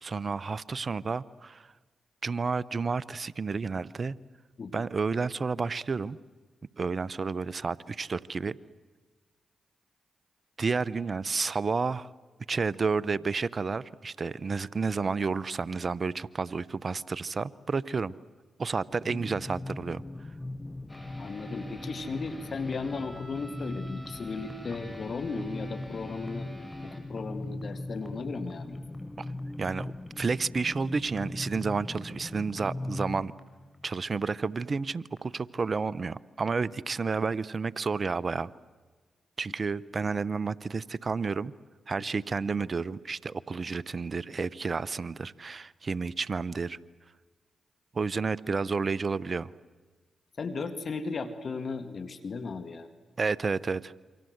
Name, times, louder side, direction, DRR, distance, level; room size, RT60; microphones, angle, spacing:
voice 1, 0.0-1.7 2.2-4.2 4.7-6.2 6.8-8.6 10.6-12.1 12.5-18.1 18.6-20.0 29.2-29.3 29.6-33.3 33.8-38.5 39.4-41.5 41.9-46.8 47.9-49.5 53.2-53.9, right 4 dB, 50° right, 20 dB, 0.8 m, -31 dB
sound 1, 19.0-33.3, left 2 dB, 30° left, 1.1 m, -40 dB
sound 2, 20.9-35.2 35.6-35.7, equal, 10° left, 6.8 m, -51 dB
voice 2, 21.2-26.5 26.8-28.8 50.4-52.9, left 4 dB, 60° left, 9 dB, 1.8 m, -36 dB
28.5 x 25.5 x 8.0 m, 1.4 s
supercardioid pair, 40°, 0 cm